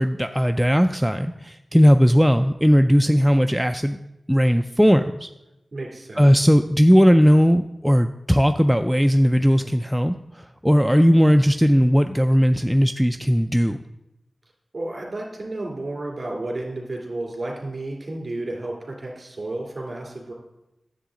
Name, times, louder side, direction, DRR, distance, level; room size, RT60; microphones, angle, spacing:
voice 1, 0.0-4.0 4.3-5.3 6.2-13.8, equal, 5° right, 7 dB, 0.3 m, -18 dB
voice 2, 5.7-6.3 14.7-20.3, right 2 dB, 45° right, 0 dB, 2.7 m, -32 dB
9.9 x 7.5 x 3.8 m, 0.91 s
wide cardioid pair, 90°, 0 cm